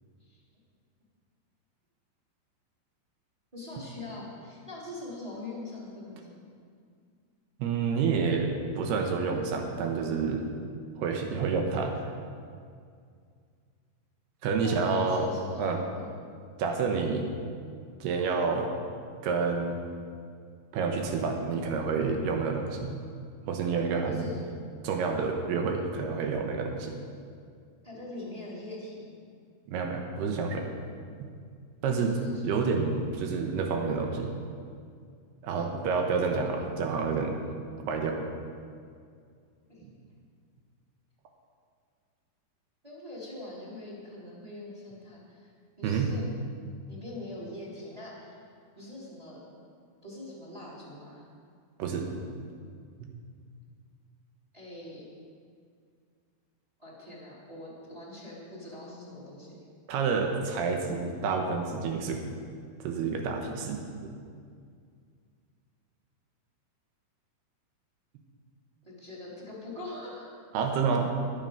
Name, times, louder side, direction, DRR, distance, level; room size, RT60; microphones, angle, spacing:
voice 1, 3.5-6.3 14.6-15.6 15.9-16.1 24.1-24.4 27.8-29.2 31.9-32.4 39.7-39.8 42.8-45.5 45.8-46.3 46.9-48.4 48.7-49.4 50.0-51.2 54.5-55.0 56.8-59.6 68.8-70.4, left 2 dB, 10° right, -5 dB, 2.8 m, -43 dB
voice 2, 7.6-10.6 11.0-11.9 14.4-15.3 15.6-15.8 16.6-17.3 18.0-18.7 19.2-19.8 20.7-22.9 23.4-24.3 24.8-26.9 29.7-30.7 31.8-32.1 32.4-34.3 35.4-37.4 37.9-38.2 39.8-39.9 45.8-46.1 51.8-52.1 52.4-52.5 59.9-62.2 62.8-64.1 70.5-71.2, right 5 dB, 75° right, 2 dB, 3.0 m, -29 dB
20.5 x 7.7 x 5.4 m, 2.2 s
omnidirectional pair, 4.8 m